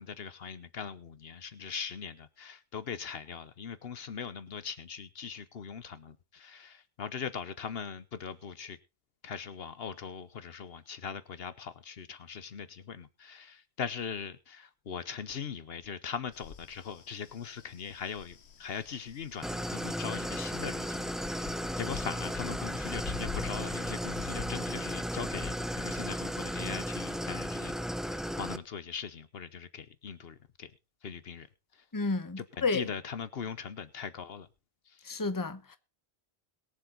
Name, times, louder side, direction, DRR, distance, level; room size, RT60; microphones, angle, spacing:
voice 1, 0.0-8.8 9.2-27.8 28.0-30.7 31.0-31.5 31.7-31.8 32.4-34.5 34.9-35.0, left 6 dB, 70° left, 1.1 m, -40 dB
sound 1, 16.3-26.4, left 6 dB, 85° left, 1.3 m, -46 dB
Idling, 19.4-28.6, equal, ahead, 0.4 m, -35 dB
voice 2, 31.9-32.9 35.0-35.8, left 3 dB, 20° left, 0.9 m, -31 dB
22.0 x 7.4 x 3.8 m
omnidirectional pair, 1.1 m